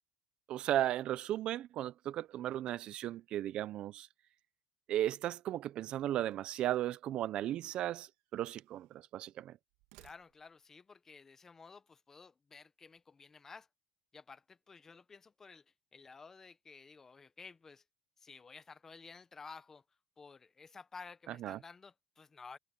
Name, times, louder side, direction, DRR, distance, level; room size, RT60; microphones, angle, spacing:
voice 1, 0.5-4.1 4.9-9.6 21.3-21.6, right 12 dB, 50° right, 0.5 m, -36 dB
sound 1, 6.3-7.1 8.0-9.0 9.7-10.7, right 19 dB, 85° right, 2.4 m, -66 dB
voice 2, 10.0-13.7 14.1-15.6 15.9-17.8 18.2-19.8 20.2-22.6, left 4 dB, 20° left, 1.0 m, -53 dB
cardioid pair, 140°, 2 cm